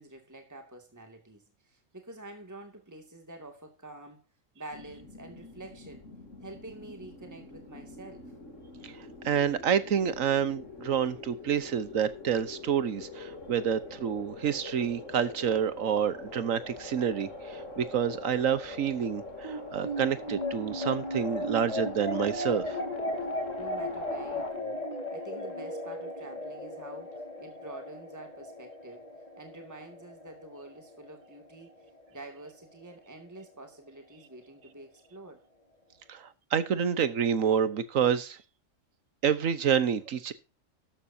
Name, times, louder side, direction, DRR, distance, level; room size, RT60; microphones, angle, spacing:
voice 1, 0.0-4.2 4.5-6.0 6.4-8.3 23.6-24.8 25.1-29.1 29.4-31.7 32.1-35.4, right 2 dB, 15° right, 2.4 m, -47 dB
sound 1, 4.7-24.5, left 2 dB, 70° left, 3.3 m, -44 dB
voice 2, 9.2-22.8 36.1-38.4 39.2-40.3, right 8 dB, 90° right, 1.4 m, -28 dB
sound 2, 19.4-32.0, left 1 dB, 30° left, 3.3 m, -36 dB
13.5 x 12.0 x 2.8 m
omnidirectional pair, 1.3 m